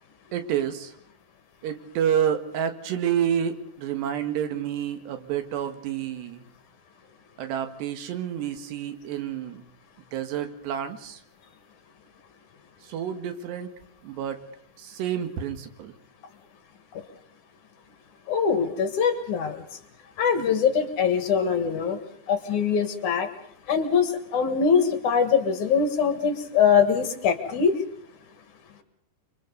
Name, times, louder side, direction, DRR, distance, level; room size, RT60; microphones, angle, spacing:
voice 1, 0.3-0.9 1.6-6.5 7.4-9.6 10.1-11.2 12.8-13.7 14.0-14.4 14.8-15.9, right 9 dB, 85° right, 8 dB, 3.8 m, -29 dB
voice 2, 18.3-19.6 20.2-22.0 22.3-23.3 23.7-27.8, left 6 dB, 55° left, 8 dB, 2.7 m, -23 dB
30.0 x 24.0 x 4.0 m, 0.67 s
omnidirectional pair, 4.8 m